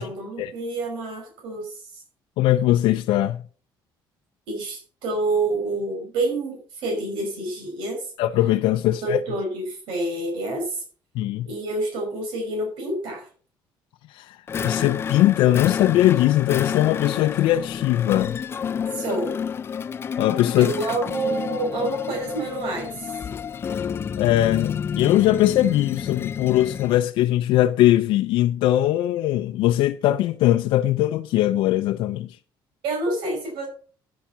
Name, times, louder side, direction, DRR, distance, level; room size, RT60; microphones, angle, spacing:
voice 1, 0.0-2.0 4.5-8.1 9.0-10.8 11.5-13.3 18.9-19.4 20.6-23.2 32.8-33.7, right 2 dB, 85° right, 5.3 m, -28 dB
voice 2, 2.4-3.4 8.2-9.2 11.2-11.5 14.1-14.4 14.6-18.4 20.2-20.7 24.2-32.4, left 14 dB, 80° left, 0.5 m, -20 dB
sound 1, 14.5-27.0, left 7 dB, 30° left, 0.4 m, -30 dB
10.5 x 7.2 x 6.0 m
cardioid pair, 155°, 9 cm